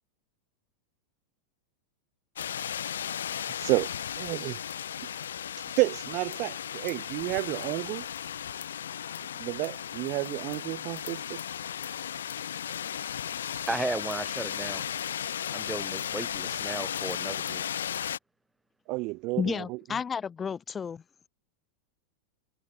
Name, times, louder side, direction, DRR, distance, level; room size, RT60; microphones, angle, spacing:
sound 1, 2.4-18.2, left 9 dB, 65° left, 1.4 m, -35 dB
voice 1, 3.6-3.9 4.2-4.6 5.8-8.1 9.3-11.4 18.9-19.8, right 25 dB, 40° right, 3.1 m, -30 dB
voice 2, 13.7-14.8 15.5-17.6, right 2 dB, 5° right, 4.9 m, -35 dB
voice 3, 19.4-21.0, left 6 dB, 20° left, 2.1 m, -32 dB
figure-of-eight pair, 90°, 0 cm